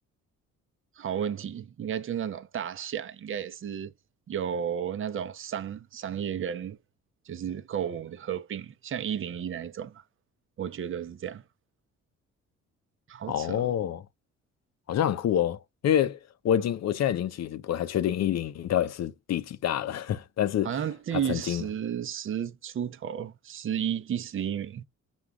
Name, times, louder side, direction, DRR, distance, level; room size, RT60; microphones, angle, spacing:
voice 1, 1.0-3.9 4.3-6.8 7.3-10.0 10.6-11.4 13.1-13.7 20.6-24.8, right 9 dB, 45° right, 0.7 m, -33 dB
voice 2, 13.3-14.0 14.9-16.2 16.4-20.7 21.2-21.6, left 10 dB, 60° left, 0.7 m, -27 dB
6.3 x 2.4 x 3.4 m
cardioid pair, 90°, 30 cm